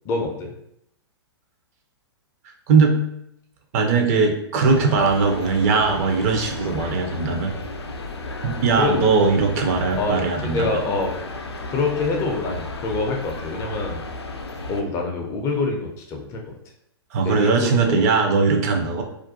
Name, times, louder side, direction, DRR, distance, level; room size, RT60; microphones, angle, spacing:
voice 1, 0.0-0.5 8.8-9.1 9.9-11.2 11.7-14.0 14.7-16.6 17.2-18.1, left 3 dB, 25° left, 1 dB, 0.4 m, -26 dB
voice 2, 2.7-3.0 3.7-7.5 8.4-10.7 17.1-19.0, right 4 dB, 40° right, 3 dB, 0.5 m, -20 dB
sound 1, 4.6-14.8, left 2 dB, 85° left, 0.4 m, -34 dB
2.4 x 2.1 x 2.6 m, 0.77 s
figure-of-eight pair, 115°, 13 cm